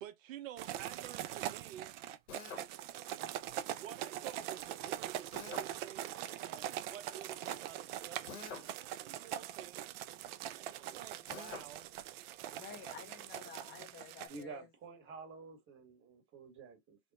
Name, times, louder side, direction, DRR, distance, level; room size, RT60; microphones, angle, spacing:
voice 1, 0.0-1.9 3.0-3.4 3.7-6.2 6.4-9.9 10.5-11.9, right 11 dB, 70° right, 0.8 m, -51 dB
sound 1, 0.6-14.4, right 12 dB, 45° right, 0.5 m, -42 dB
Drill, 2.3-2.7 5.3-5.7 8.3-8.7 11.3-11.7, left 4 dB, 80° left, 1.3 m, -46 dB
voice 2, 12.5-14.7, left 7 dB, 25° left, 0.5 m, -51 dB
voice 3, 14.3-17.0, right 4 dB, 30° right, 1.3 m, -50 dB
3.4 x 2.1 x 3.9 m
hypercardioid pair, 115°, 41 cm